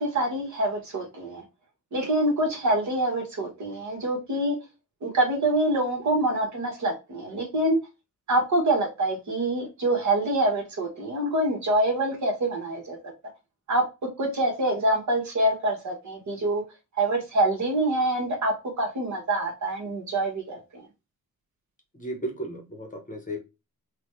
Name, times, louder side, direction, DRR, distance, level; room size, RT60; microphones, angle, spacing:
voice 1, 0.0-1.4 1.9-4.6 5.0-7.8 8.3-13.0 13.7-13.8 14.2-16.6 17.0-20.8, right 1 dB, 50° right, 1.3 m, -25 dB
voice 2, 21.9-23.4, right 1 dB, 20° left, 0.9 m, -34 dB
4.1 x 2.3 x 3.0 m
wide cardioid pair, 130°, 37 cm